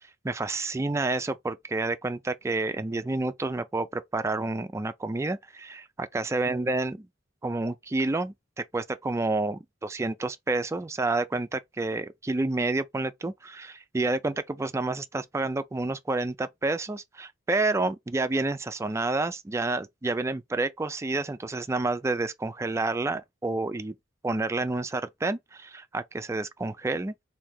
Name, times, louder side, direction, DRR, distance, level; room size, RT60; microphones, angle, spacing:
voice 1, 0.2-7.1 7.4-23.9 24.2-27.1, right 2 dB, 15° right, 0.3 m, -29 dB
3.2 x 2.7 x 3.5 m
head